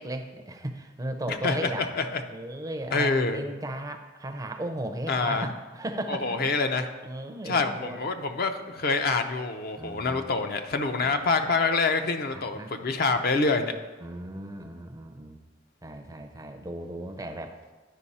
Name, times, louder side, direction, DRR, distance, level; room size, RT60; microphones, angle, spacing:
voice 1, 0.0-1.9 2.3-6.4 7.0-8.0 9.8-10.4 11.0-11.1 12.3-12.7 14.0-15.4 15.8-17.6, right 1 dB, 15° right, 6 dB, 0.5 m, -36 dB
voice 2, 1.3-2.2 2.9-3.4 5.1-5.5 6.1-6.9 7.4-13.8, left 3 dB, 50° left, 6 dB, 0.5 m, -26 dB
9.9 x 5.2 x 4.1 m, 1.3 s
head